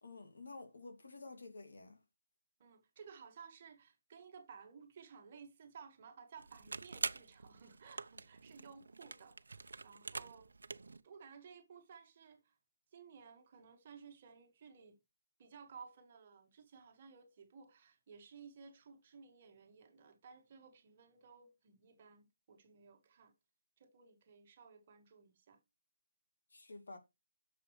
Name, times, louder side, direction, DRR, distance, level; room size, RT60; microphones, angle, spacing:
voice 1, 0.0-2.0 26.5-27.0, left 3 dB, 65° left, 2.4 m, -51 dB
voice 2, 2.6-10.5 11.0-12.6 12.9-15.0 15.4-23.3 23.8-25.6, right 6 dB, 25° right, 1.6 m, -57 dB
sound 1, 6.4-11.0, right 4 dB, 85° right, 0.7 m, -45 dB
11.0 x 6.9 x 3.2 m
hypercardioid pair, 180°, 0 cm